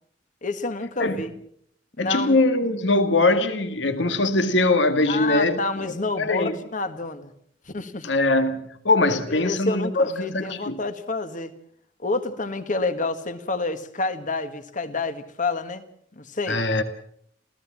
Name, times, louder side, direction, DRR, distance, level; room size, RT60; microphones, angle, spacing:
voice 1, 0.4-1.3 2.0-2.4 5.1-7.3 7.7-8.1 9.1-11.5 12.0-15.8 16.1-16.6, left 3 dB, 45° left, 1.8 m, -28 dB
voice 2, 2.0-5.9 6.2-6.5 8.0-10.1 10.3-10.8 16.5-16.8, left 2 dB, 75° left, 1.9 m, -22 dB
28.0 x 16.0 x 7.4 m
head